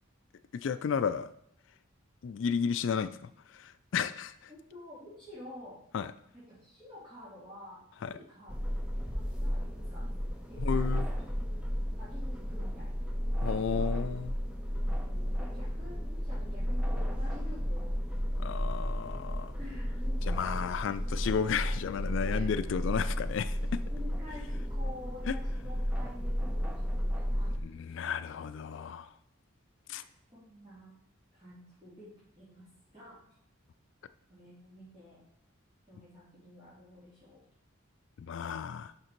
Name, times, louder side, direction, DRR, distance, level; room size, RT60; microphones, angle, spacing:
voice 1, 0.5-1.3 2.2-4.5 5.9-6.1 8.0-8.2 10.6-11.1 13.4-14.3 18.4-19.6 20.2-23.8 25.3-25.4 27.6-29.2 29.9-30.1 38.2-38.9, left 6 dB, 65° left, 13 dB, 0.3 m, -33 dB
voice 2, 4.5-5.8 6.3-8.5 8.9-10.2 10.5-11.5 12.0-13.1 13.6-14.0 14.8-17.9 19.5-20.2 22.2-22.5 23.9-27.8 29.9-30.9 31.3-32.1 32.3-33.2 34.3-35.2 35.9-37.4, left 1 dB, 25° right, -11 dB, 2.6 m, -50 dB
sound 1, 8.5-27.6, equal, 5° right, 0.6 m, -33 dB
6.5 x 5.9 x 4.5 m, 0.72 s
head